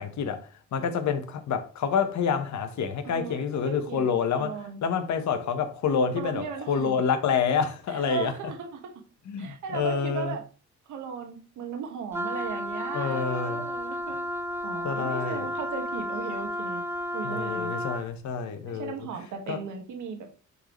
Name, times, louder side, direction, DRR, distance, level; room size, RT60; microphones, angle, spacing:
voice 1, 0.0-8.3 9.3-10.3 12.9-13.6 14.8-15.5 17.2-18.9 19.5-19.6, left 6 dB, 70° left, 1.4 m, -28 dB
voice 2, 3.0-4.8 6.2-7.0 7.9-8.9 9.4-10.4 10.9-14.2 14.6-16.8 17.1-17.7 18.7-20.4, right 7 dB, 80° right, 1.8 m, -37 dB
Wind instrument woodwind instrument, 12.1-18.1, left 1 dB, 10° right, 0.5 m, -32 dB
9.9 x 4.1 x 3.2 m
cardioid pair, 90°, 30 cm